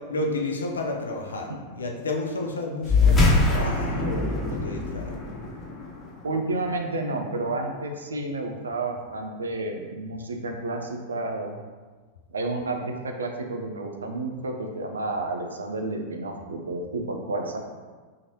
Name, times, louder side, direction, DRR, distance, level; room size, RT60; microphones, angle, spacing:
voice 1, 0.1-5.2, left 2 dB, 70° left, 2 dB, 0.7 m, -31 dB
sound 1, 2.8-7.7, left 3 dB, 15° left, 1.0 m, -24 dB
voice 2, 6.2-11.6 12.3-17.6, right 2 dB, 70° right, 3 dB, 0.5 m, -31 dB
5.6 x 3.2 x 2.9 m, 1.4 s
figure-of-eight pair, 90°, 0 cm